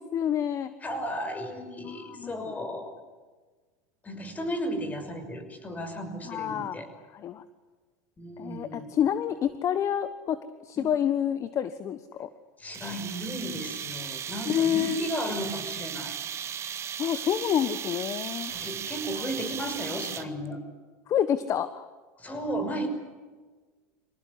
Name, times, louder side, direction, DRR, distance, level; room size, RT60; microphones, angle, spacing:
voice 1, 0.0-0.7 1.8-2.5 6.2-6.8 7.1-7.4 8.4-12.3 14.5-15.0 17.0-18.5 21.1-21.9, left 9 dB, 40° left, 12 dB, 1.4 m, -28 dB
voice 2, 0.8-2.9 4.0-6.9 8.2-8.9 10.8-10.9 12.6-16.1 18.5-20.6 22.2-22.9, equal, 20° left, 9 dB, 6.1 m, -34 dB
sound 1, 12.7-20.5, right 8 dB, 35° right, 2.0 m, -36 dB
26.0 x 18.5 x 9.9 m, 1.4 s
supercardioid pair, 110°, 8 cm